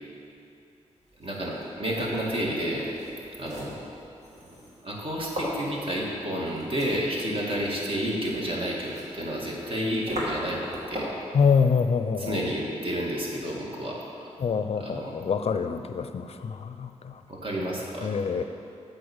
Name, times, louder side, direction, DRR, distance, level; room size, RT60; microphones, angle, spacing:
sound 1, 1.1-11.3, equal, 65° right, 2.0 m, -39 dB
voice 1, 1.2-2.8 3.4-3.8 4.8-10.6 10.9-11.1 12.2-14.0 14.8-15.2 17.3-18.4, equal, 45° right, -3 dB, 1.8 m, -30 dB
voice 2, 11.3-12.4 14.4-17.2 17.6-17.7 18.0-18.4, left 6 dB, 55° left, 9 dB, 0.5 m, -25 dB
8.6 x 4.0 x 7.1 m, 2.7 s
cardioid pair, 55°, 12 cm